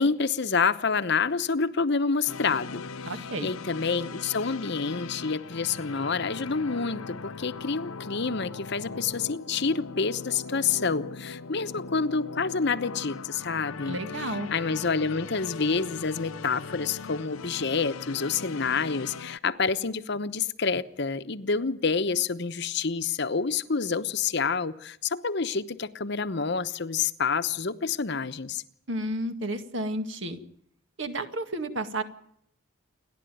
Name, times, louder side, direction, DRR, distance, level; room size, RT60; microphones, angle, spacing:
voice 1, 0.0-28.6, left 5 dB, 55° left, 1.0 m, -28 dB
sound 1, 2.3-19.4, left 4 dB, 90° left, 0.8 m, -40 dB
voice 2, 3.1-3.5 13.8-14.5 28.9-30.4 31.0-32.0, right 1 dB, 65° right, 2.0 m, -32 dB
29.0 x 11.5 x 9.3 m
head